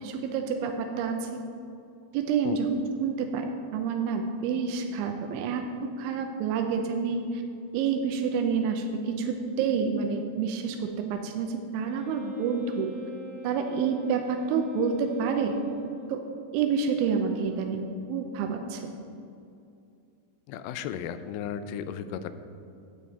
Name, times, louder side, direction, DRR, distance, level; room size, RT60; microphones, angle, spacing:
voice 1, 0.0-1.4 2.1-2.7 3.0-3.5 3.7-7.4 7.7-12.9 13.4-15.6 16.1-16.2 16.5-18.9, right 6 dB, 90° right, 4 dB, 3.1 m, -28 dB
Wind instrument woodwind instrument, 11.8-16.4, left 1 dB, 50° right, 3.4 m, -45 dB
voice 2, 20.5-22.3, left 8 dB, 90° left, 11 dB, 3.0 m, -35 dB
12.0 x 8.8 x 4.1 m, 2.6 s
omnidirectional pair, 5.3 m